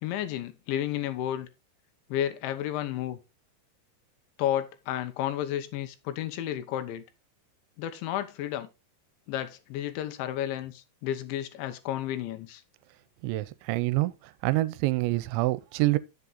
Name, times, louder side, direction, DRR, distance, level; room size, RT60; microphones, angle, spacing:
voice 1, 0.0-1.5 2.1-3.2 4.4-7.0 7.8-8.7 9.3-12.6, left 11 dB, 80° left, 3.3 m, -32 dB
voice 2, 13.2-14.1 14.4-16.0, right 19 dB, 85° right, 2.9 m, -26 dB
9.5 x 7.3 x 4.0 m
omnidirectional pair, 5.3 m